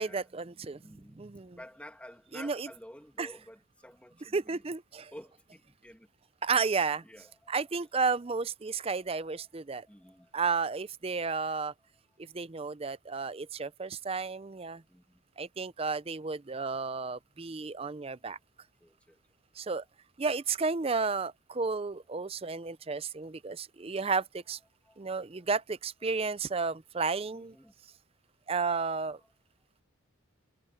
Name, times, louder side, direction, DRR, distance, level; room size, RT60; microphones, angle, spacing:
voice 1, 0.0-1.6 2.3-2.7 3.2-3.3 4.3-5.1 6.4-7.0 7.5-9.9 10.3-11.7 12.3-14.8 15.4-18.4 19.6-19.8 20.2-24.6 25.0-27.5 28.5-29.2, right 4 dB, 25° right, 0.5 m, -32 dB
voice 2, 0.8-1.2 1.6-4.6 5.1-6.1 7.0-7.5 9.0-9.4 9.9-10.3 14.9-15.0 18.8-19.2 24.8-25.0 27.3-27.7 29.0-29.1, left 1 dB, 5° left, 2.3 m, -51 dB
head